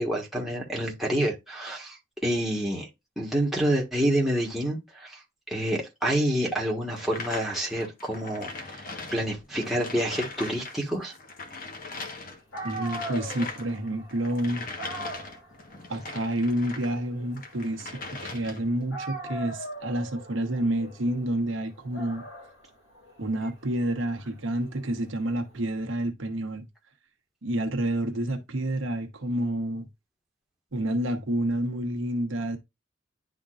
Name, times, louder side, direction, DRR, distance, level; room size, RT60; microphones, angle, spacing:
voice 1, 0.0-2.9 3.2-5.2 5.5-8.8 9.1-11.1, right 1 dB, ahead, 1.5 m, -28 dB
sound 1, 6.9-10.8 11.0-16.9 17.3-18.8, left 3 dB, 45° left, 1.2 m, -40 dB
Dog, 12.2-12.3 12.5-18.5 18.9-25.7, right 1 dB, 75° left, 2.4 m, -41 dB
voice 2, 12.6-14.7 15.9-22.3 23.2-26.6 27.4-29.9 30.7-32.6, right 1 dB, 75° right, 1.1 m, -29 dB
10.5 x 3.7 x 2.5 m
head